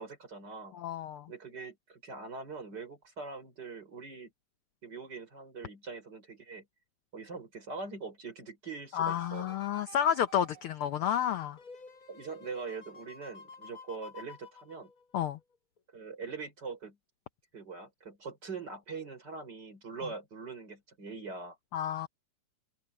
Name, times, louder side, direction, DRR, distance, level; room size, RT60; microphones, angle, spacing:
voice 1, 0.0-0.8 1.3-4.3 4.8-6.7 7.1-9.6 12.1-14.9 15.9-17.0 17.5-21.6, right 4 dB, 35° right, 5.5 m, -42 dB
voice 2, 0.7-1.3 8.9-11.6 15.1-15.4 21.7-22.1, left 9 dB, 75° left, 1.2 m, -30 dB
sound 1, 9.1-15.3 15.8-15.9, left 2 dB, 25° left, 7.4 m, -52 dB
omnidirectional pair, 3.3 m